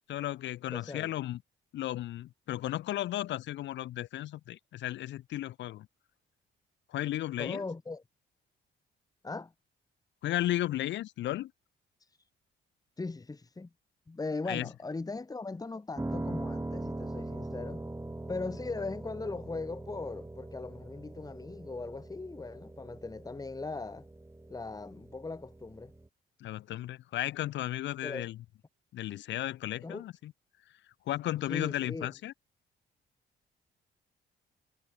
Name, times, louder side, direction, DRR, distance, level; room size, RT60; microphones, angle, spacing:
voice 1, 0.1-1.4 1.7-5.9 6.9-7.6 10.2-11.5 14.5-14.7 26.4-28.4 28.9-30.3 31.1-32.3, left 14 dB, 65° left, 0.5 m, -34 dB
voice 2, 0.7-1.1 7.4-8.0 9.2-9.5 13.0-13.7 14.1-17.9 18.3-24.0 24.5-25.9 28.0-28.3 29.8-30.0 31.5-32.1, left 3 dB, 20° left, 1.6 m, -39 dB
Piano, 16.0-26.1, right 2 dB, 10° right, 3.3 m, -41 dB
cardioid pair, 90°, 20 cm